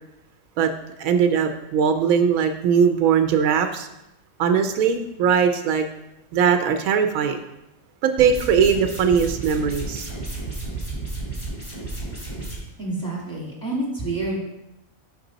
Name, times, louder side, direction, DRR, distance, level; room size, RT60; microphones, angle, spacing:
voice 1, 1.0-3.9 4.4-5.9 6.3-7.4 8.0-10.1, right 7 dB, 85° right, 7 dB, 1.0 m, -20 dB
sound 1, 8.2-12.6, right 2 dB, 20° left, 2.3 m, -32 dB
voice 2, 12.8-14.4, right 2 dB, 5° left, -5 dB, 2.0 m, -28 dB
5.9 x 5.2 x 3.9 m, 0.89 s
omnidirectional pair, 1.4 m